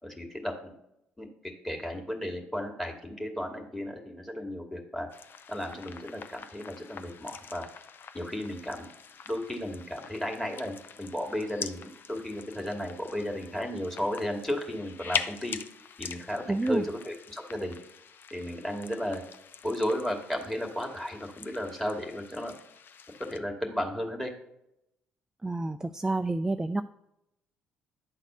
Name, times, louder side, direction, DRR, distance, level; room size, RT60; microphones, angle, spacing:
voice 1, 0.0-0.8 1.2-1.3 1.6-5.1 5.5-7.7 8.1-8.9 9.3-15.6 16.0-17.7 18.3-19.2 19.6-22.5 23.3-24.3, left 1 dB, 5° left, 2 dB, 2.3 m, -34 dB
sound 1, 5.1-23.4, left 6 dB, 45° left, 0.6 m, -43 dB
voice 2, 16.5-16.8 25.4-26.8, right 2 dB, 10° right, 10 dB, 0.4 m, -28 dB
10.5 x 4.1 x 6.8 m, 0.83 s
figure-of-eight pair, 45°, 5 cm